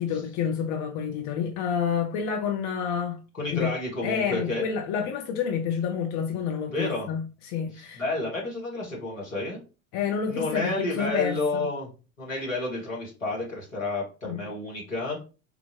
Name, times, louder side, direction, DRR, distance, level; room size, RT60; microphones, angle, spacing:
voice 1, 0.0-3.2 3.5-3.7 4.0-8.0 9.9-11.7 14.2-14.5, left 7 dB, 45° left, 0.7 m, -29 dB
voice 2, 3.4-4.7 6.7-7.1 7.7-9.6 10.3-11.9 12.2-15.2, left 2 dB, 80° left, 1.3 m, -30 dB
3.5 x 2.4 x 3.0 m
figure-of-eight pair, 65°, 39 cm